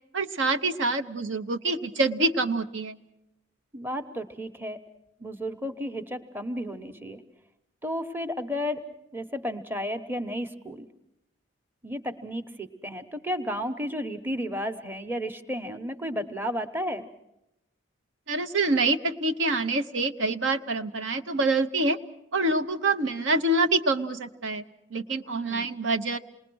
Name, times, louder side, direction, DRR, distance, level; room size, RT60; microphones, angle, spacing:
voice 1, 0.1-3.0 18.3-22.0 22.3-24.6 24.9-26.2, right 2 dB, 70° right, 8 dB, 0.9 m, -26 dB
voice 2, 3.7-4.8 5.2-7.2 7.8-8.8 9.1-10.9 11.8-17.0 25.4-25.7, equal, 10° right, 7 dB, 1.0 m, -33 dB
28.0 x 20.5 x 6.2 m, 0.84 s
head